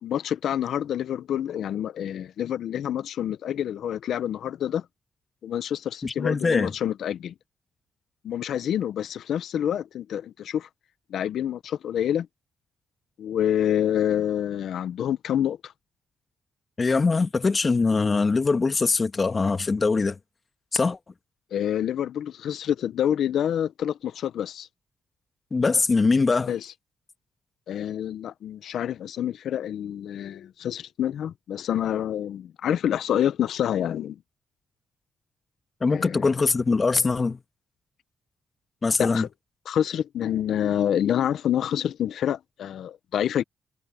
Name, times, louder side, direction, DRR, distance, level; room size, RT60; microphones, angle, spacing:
voice 1, 0.0-4.8 5.4-7.3 8.2-10.7 11.1-12.3 13.2-15.7 21.5-24.7 26.5-26.7 27.7-34.2 35.9-36.3 39.0-39.3 39.7-43.4, left 10 dB, 75° left, 1.0 m, -27 dB
voice 2, 6.0-6.7 16.8-20.2 20.7-21.0 25.5-26.5 35.8-37.4 38.8-39.3, left 4 dB, 40° left, 1.6 m, -22 dB
supercardioid pair, 55°, 0 cm